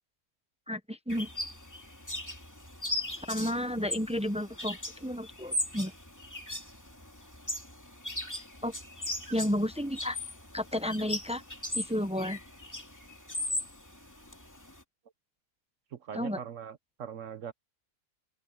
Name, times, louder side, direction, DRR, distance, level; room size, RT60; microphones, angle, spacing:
voice 1, 0.7-1.3 3.3-5.9 8.6-8.7 9.3-10.2 10.5-11.4 11.7-12.4 16.1-16.4, equal, 5° right, 0.5 m, -32 dB
sound 1, 1.1-14.8, left 1 dB, 10° left, 2.5 m, -38 dB
voice 2, 15.9-17.5, right 8 dB, 60° right, 1.0 m, -41 dB
omnidirectional pair, 1.7 m